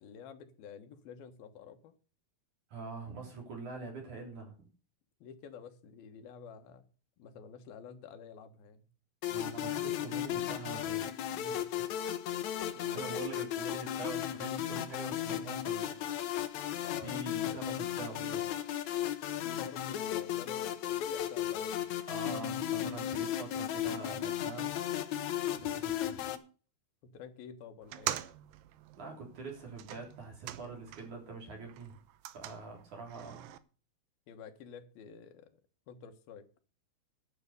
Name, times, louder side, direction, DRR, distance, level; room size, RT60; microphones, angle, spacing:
voice 1, 0.0-2.0 5.2-6.9 7.2-8.9 11.3-11.7 12.7-13.1 16.6-17.2 17.5-17.6 19.4-21.9 25.5-25.8 27.0-28.2 34.3-35.5 35.9-36.5, left 7 dB, 85° left, 8 dB, 3.2 m, -50 dB
voice 2, 2.7-4.5 9.3-11.0 12.9-15.9 17.0-18.4 22.1-24.7 25.6-26.3 28.9-32.0 32.3-33.5, right 4 dB, 55° right, -1 dB, 5.2 m, -44 dB
sound 1, 9.2-26.4, left 11 dB, 65° left, 2.0 m, -35 dB
sound 2, 27.8-31.3 31.6-33.6, right 13 dB, 80° right, 2.5 m, -43 dB
11.5 x 8.0 x 6.7 m, 0.37 s
omnidirectional pair, 4.2 m